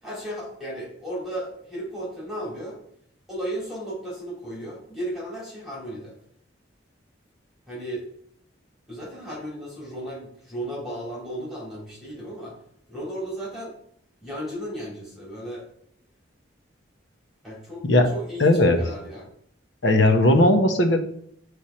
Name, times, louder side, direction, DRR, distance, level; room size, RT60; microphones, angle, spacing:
voice 1, 0.0-2.8 3.3-6.1 7.7-8.1 8.9-12.5 12.9-13.7 14.2-15.7 17.4-17.8 18.1-19.3, right 1 dB, ahead, -7 dB, 2.9 m, -35 dB
voice 2, 18.4-18.8 19.8-21.0, left 1 dB, 70° left, 5 dB, 1.0 m, -17 dB
9.9 x 3.4 x 4.4 m, 0.68 s
head